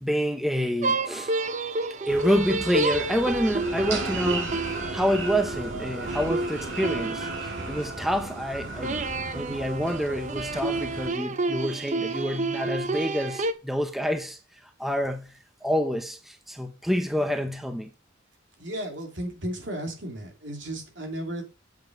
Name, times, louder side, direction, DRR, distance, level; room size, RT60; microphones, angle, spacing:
voice 1, 0.0-1.3 2.1-9.0 9.3-17.9, equal, ahead, 0.6 m, -28 dB
sound 1, 0.8-8.2 8.8-13.5, right 2 dB, 40° right, 0.8 m, -30 dB
sound 2, 2.1-11.1, right 3 dB, 90° right, 4.4 m, -35 dB
voice 2, 18.6-21.4, right 1 dB, 70° right, 2.9 m, -34 dB
8.0 x 7.3 x 5.2 m
head